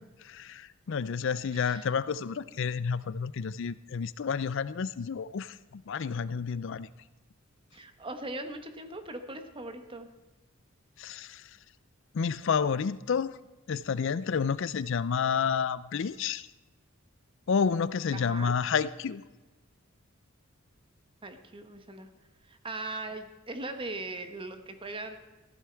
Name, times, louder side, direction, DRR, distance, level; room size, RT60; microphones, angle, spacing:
voice 1, 0.2-5.5 5.9-6.9 11.0-11.4 12.1-13.4 13.7-16.5 17.5-19.2, left 6 dB, 65° left, 17 dB, 0.4 m, -30 dB
voice 2, 1.5-1.9 7.7-10.1 18.1-18.5 21.2-22.1 22.4-25.2, right 2 dB, 25° right, 7 dB, 1.2 m, -40 dB
14.5 x 12.0 x 4.5 m, 1.2 s
head